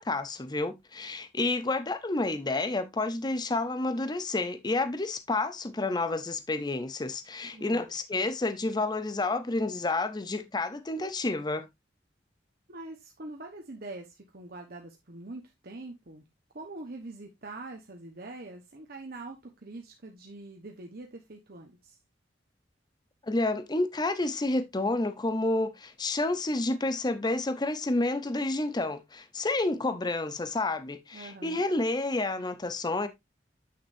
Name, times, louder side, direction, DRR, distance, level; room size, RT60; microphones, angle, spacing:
voice 1, 0.0-11.7 23.2-33.1, left 2 dB, 25° left, 0.7 m, -30 dB
voice 2, 7.5-7.9 12.7-16.2 16.5-22.0 31.1-31.7, right 2 dB, 60° right, 1.1 m, -44 dB
8.7 x 6.6 x 2.6 m
head